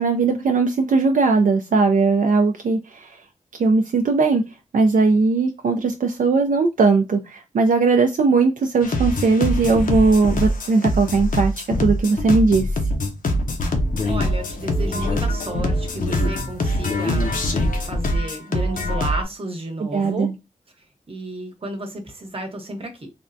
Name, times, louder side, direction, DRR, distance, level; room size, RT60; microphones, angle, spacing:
voice 1, 0.0-3.2 3.6-4.4 4.7-12.7 19.8-20.3, right 4 dB, 75° right, 0.4 m, -19 dB
sound 1, 8.8-19.2, left 1 dB, 75° left, 0.6 m, -23 dB
voice 2, 14.0-20.3 21.1-23.1, right 2 dB, 40° right, 0.9 m, -33 dB
3.4 x 2.1 x 2.5 m
wide cardioid pair, 85°, 14 cm